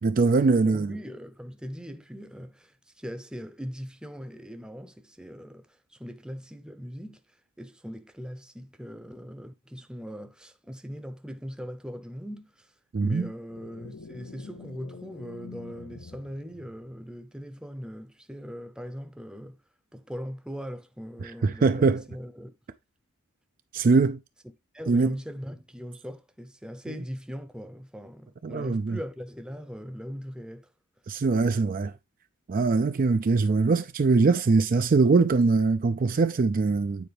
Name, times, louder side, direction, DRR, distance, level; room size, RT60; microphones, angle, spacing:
voice 1, 0.0-0.9 12.9-13.3 21.4-22.0 23.7-24.2 24.9-25.1 28.4-29.0 31.1-31.9 32.5-37.1, right 4 dB, 40° right, 0.4 m, -22 dB
voice 2, 0.6-12.7 13.0-19.6 19.9-22.5 24.7-30.7, equal, 5° right, 0.7 m, -40 dB
sound 1, 13.5-17.2, left 4 dB, 55° left, 0.6 m, -46 dB
9.2 x 4.3 x 3.3 m
head